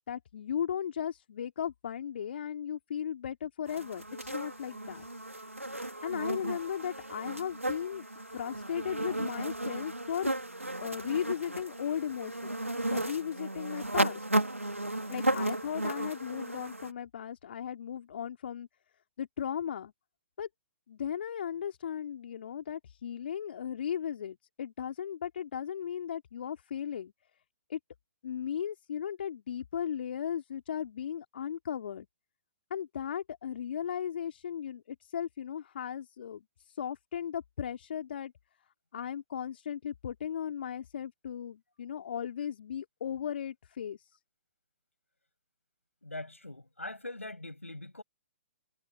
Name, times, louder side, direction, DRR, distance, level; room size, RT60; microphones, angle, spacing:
voice 1, 0.1-5.1 6.0-10.3 10.8-12.6 12.9-14.2 15.1-18.7 19.2-19.9 20.4-20.5 20.9-27.1 27.7-27.8 28.2-32.1 32.7-38.3 38.9-44.2, left 9 dB, 55° left, 2.8 m, -36 dB
sound 1, 3.7-16.9, right 1 dB, 90° right, 2.6 m, -34 dB
voice 2, 46.0-48.0, left 2 dB, 85° left, 7.8 m, -42 dB
figure-of-eight pair, 125°, 7 cm